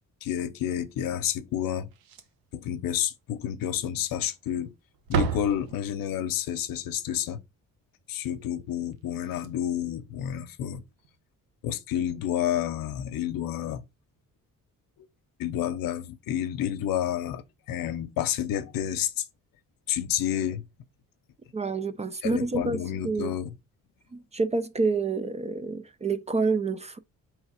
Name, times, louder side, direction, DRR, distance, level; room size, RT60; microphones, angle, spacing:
voice 1, 0.2-1.9 2.5-4.7 5.1-7.4 8.1-10.8 11.6-13.8 15.4-19.2 19.9-20.6 22.2-23.5, left 10 dB, 80° left, 0.7 m, -30 dB
Slam, 1.9-2.6 2.9-3.0 3.4-3.5 4.3-4.7 4.9-6.2 8.9-9.0 9.3-9.5 11.0-11.1, right 6 dB, 85° right, 0.8 m, -32 dB
voice 2, 21.5-23.3 24.1-27.0, right 4 dB, 20° right, 0.3 m, -28 dB
3.5 x 3.2 x 4.8 m
cardioid pair, 100°, 34 cm